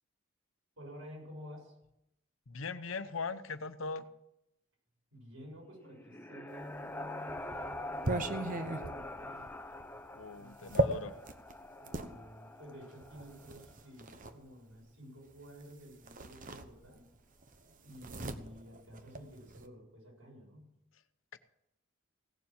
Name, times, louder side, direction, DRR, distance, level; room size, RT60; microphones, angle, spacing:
voice 1, 0.8-1.7 5.1-9.5 10.3-11.2 11.8-17.1 17.8-20.7, equal, 85° right, -2 dB, 7.4 m, -52 dB
voice 2, 2.5-4.1 10.2-11.2 21.3-21.4, left 4 dB, 90° left, 11 dB, 0.9 m, -40 dB
sound 1, 5.7-13.5, left 1 dB, 10° left, 0.8 m, -45 dB
sound 2, 6.8-12.1 13.0-14.4 15.6-15.7 16.0-17.2 17.4-19.7, right 2 dB, 40° right, 0.9 m, -37 dB
17.0 x 7.1 x 7.8 m, 0.84 s
head